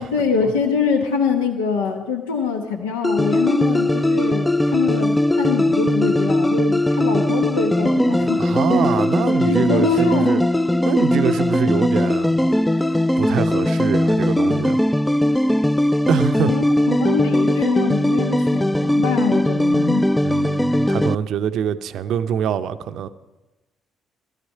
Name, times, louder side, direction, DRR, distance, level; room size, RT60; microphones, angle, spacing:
voice 1, 0.0-8.4 8.7-8.9 9.4-10.5 16.5-20.1, left 5 dB, 85° left, 1.0 m, -24 dB
sound 1, 3.0-21.2, left 1 dB, 10° left, 0.4 m, -19 dB
voice 2, 8.4-10.4 10.8-12.4 12.9-14.8 16.1-16.6 20.2-23.1, right 8 dB, 65° right, 0.6 m, -24 dB
14.5 x 13.0 x 5.6 m
hypercardioid pair, 50°, 0 cm